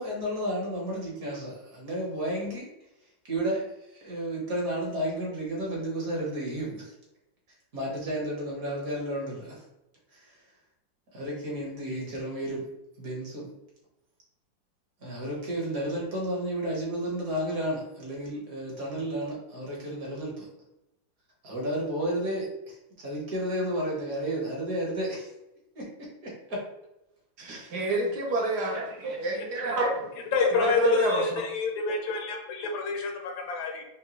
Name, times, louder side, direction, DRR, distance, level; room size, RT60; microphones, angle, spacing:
voice 1, 0.0-2.7 3.3-6.9 7.7-9.6 10.1-10.4 11.1-12.7 13.0-13.5 15.0-20.5 21.4-25.3 25.7-26.6 27.6-27.7, right 1 dB, 50° right, -4 dB, 1.6 m, -32 dB
voice 2, 27.4-30.1 30.5-31.4, right 2 dB, 65° right, -2 dB, 1.2 m, -28 dB
voice 3, 29.3-29.8 30.3-33.8, left 4 dB, 80° left, 3 dB, 1.5 m, -28 dB
5.8 x 2.2 x 2.9 m, 0.90 s
omnidirectional pair, 2.1 m